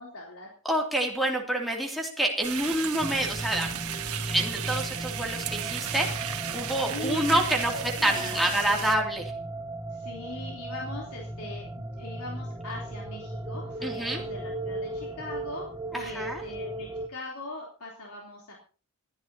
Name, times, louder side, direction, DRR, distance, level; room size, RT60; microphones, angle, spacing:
voice 1, 0.0-0.5 6.9-7.3 7.7-8.5 9.9-18.5, left 2 dB, 85° left, -2 dB, 3.4 m, -40 dB
voice 2, 0.6-3.7 4.3-7.7 8.0-9.3 13.8-14.2 15.9-16.4, right 1 dB, ahead, -1 dB, 2.6 m, -27 dB
sound 1, 2.4-8.9, right 9 dB, 85° right, 1.4 m, -35 dB
sound 2, 3.0-17.1, right 1 dB, 15° right, 0.7 m, -36 dB
27.0 x 10.5 x 2.8 m, 0.38 s
head